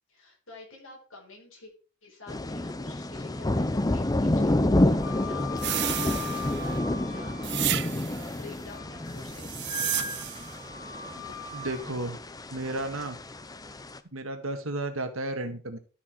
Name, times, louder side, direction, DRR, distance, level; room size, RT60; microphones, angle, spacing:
voice 1, 0.1-1.7 2.0-7.4 7.8-10.3, left 3 dB, 70° left, -1 dB, 5.2 m, -49 dB
sound 1, 2.3-14.0, left 1 dB, 20° left, 0.6 m, -29 dB
Wind instrument woodwind instrument, 5.0-8.0 8.4-9.1 9.7-11.9, left 5 dB, 40° left, 2.2 m, -40 dB
sound 2, 5.6-6.8 7.4-8.3 9.3-10.5, right 14 dB, 55° right, 0.6 m, -32 dB
voice 2, 11.5-12.2 12.5-13.2 14.1-15.8, right 2 dB, 75° right, 7 dB, 1.7 m, -33 dB
12.5 x 6.0 x 4.5 m, 0.37 s
head